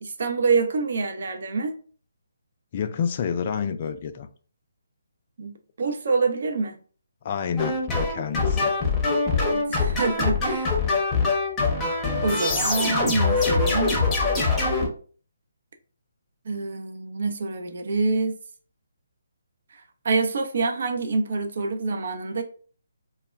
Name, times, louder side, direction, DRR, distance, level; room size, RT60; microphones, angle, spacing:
voice 1, 0.0-1.8 5.4-6.7 9.3-10.7 12.2-13.9 16.5-18.3 20.0-22.4, right 4 dB, 55° right, 0.5 m, -26 dB
voice 2, 2.7-4.3 7.2-8.8, left 7 dB, 40° left, 0.3 m, -29 dB
sound 1, 7.6-14.9, left 3 dB, 15° left, 0.7 m, -23 dB
2.2 x 2.1 x 3.3 m
figure-of-eight pair, 145°, 0 cm